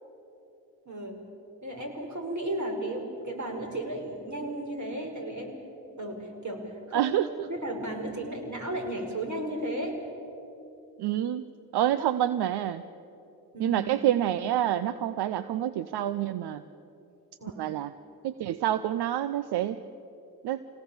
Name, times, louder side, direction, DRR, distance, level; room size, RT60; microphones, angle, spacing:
voice 1, 0.9-1.2 1.6-5.6 6.0-7.1 7.5-10.0 13.5-13.8 17.4-17.6, right 1 dB, 45° right, 2 dB, 5.6 m, -34 dB
voice 2, 6.9-7.5 11.0-11.4 11.7-12.8 13.6-16.6 17.6-17.9 18.2-19.8 20.4-20.6, right 11 dB, 75° right, 13 dB, 0.7 m, -27 dB
25.5 x 18.0 x 8.8 m, 2.9 s
supercardioid pair, 45°, 40 cm